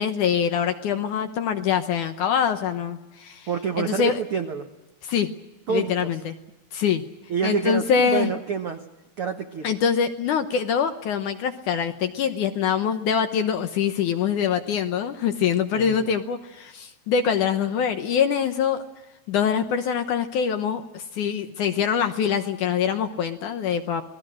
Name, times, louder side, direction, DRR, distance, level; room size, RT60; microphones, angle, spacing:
voice 1, 0.0-3.5 3.8-4.2 5.0-5.3 5.7-6.3 6.7-7.0 7.4-8.3 9.6-18.8 19.3-24.0, left 7 dB, 70° left, 8 dB, 2.0 m, -24 dB
voice 2, 3.5-4.7 5.7-6.2 7.3-8.8 9.2-9.7 15.7-16.2, right 6 dB, 90° right, 5 dB, 1.2 m, -28 dB
29.0 x 20.0 x 6.4 m, 1.0 s
omnidirectional pair, 4.5 m